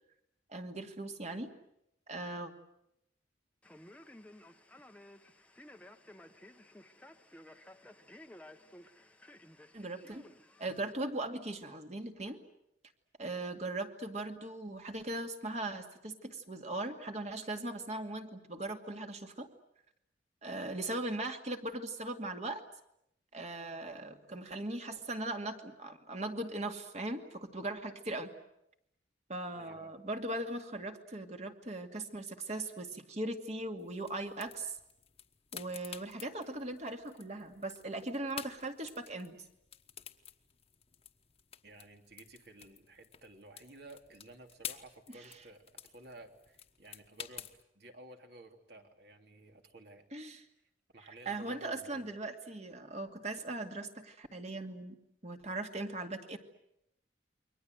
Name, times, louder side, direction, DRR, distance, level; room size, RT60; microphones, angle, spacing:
voice 1, 0.5-1.5 2.1-2.5 9.7-10.2 10.6-12.4 13.2-19.5 20.4-22.6 23.3-28.3 29.3-34.8 35.5-39.4 50.1-50.4 51.3-55.0 55.2-56.4, right 2 dB, 40° right, 5 dB, 2.2 m, -39 dB
Male speech man speaking, 3.6-10.9, left 1 dB, 10° left, 1.0 m, -55 dB
voice 2, 29.5-29.9 41.6-47.5 47.7-50.0 50.9-52.1, right 2 dB, 60° right, 4 dB, 3.1 m, -54 dB
sound 1, 33.8-47.6, left 8 dB, 35° left, 1.3 m, -51 dB
29.0 x 23.5 x 7.9 m, 0.80 s
head